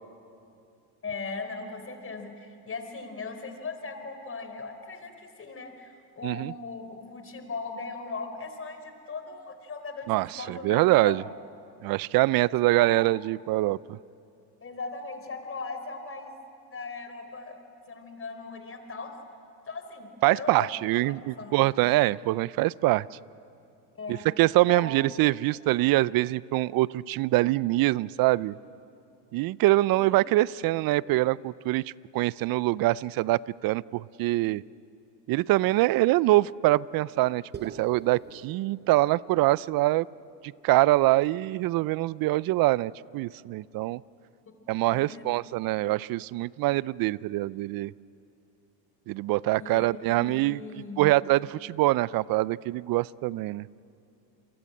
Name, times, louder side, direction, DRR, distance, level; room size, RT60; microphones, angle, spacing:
voice 1, 1.0-11.3 12.4-12.9 14.6-16.3 16.7-17.6 17.9-19.2 19.7-20.7 21.0-21.6 23.9-24.3 24.6-25.2 29.9-30.2 44.9-45.2 49.6-51.1, left 4 dB, 25° left, 7 dB, 4.4 m, -39 dB
voice 2, 10.1-11.2 11.8-14.0 20.2-23.1 24.1-28.6 29.3-31.8 32.1-34.6 35.3-40.1 40.6-44.0 44.7-47.9 49.1-50.6 51.0-53.6, right 18 dB, 45° right, 22 dB, 0.6 m, -24 dB
sound 1, 37.5-41.9, right 6 dB, 20° right, 0.9 m, -48 dB
29.0 x 23.0 x 9.0 m, 2.6 s
supercardioid pair, 95°, 49 cm